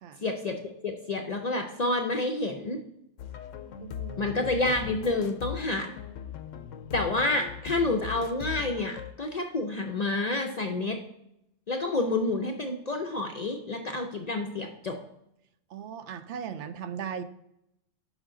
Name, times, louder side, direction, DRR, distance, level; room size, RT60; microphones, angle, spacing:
voice 1, 0.2-2.8 4.2-5.9 6.9-11.0 11.7-15.0, left 2 dB, 50° left, 3 dB, 0.5 m, -29 dB
sound 1, 3.2-9.1, left 9 dB, 80° left, 0.9 m, -39 dB
voice 2, 3.8-4.4 15.7-17.2, right 7 dB, 70° right, 11 dB, 0.8 m, -38 dB
6.3 x 5.2 x 3.7 m, 0.79 s
omnidirectional pair, 1.3 m